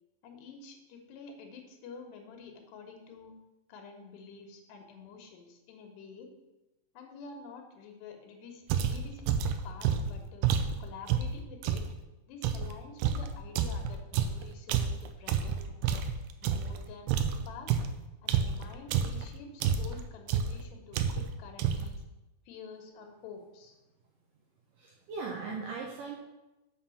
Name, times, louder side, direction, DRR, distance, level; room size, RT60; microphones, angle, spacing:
voice 1, 0.2-3.3 3.7-6.3 7.0-10.5 10.8-11.9 12.3-16.1 16.4-17.8 18.2-22.0 22.5-23.7, left 5 dB, 85° left, 4 dB, 3.5 m, -49 dB
sound 1, 8.7-11.9 12.4-16.8 17.1-19.3 19.6-20.0 20.3-20.6 20.9-21.3 21.6-22.0, right 7 dB, 90° right, 2.8 m, -29 dB
voice 2, 24.8-26.2, right 4 dB, 70° right, -1 dB, 2.1 m, -38 dB
7.4 x 5.7 x 7.0 m, 1.0 s
omnidirectional pair, 4.7 m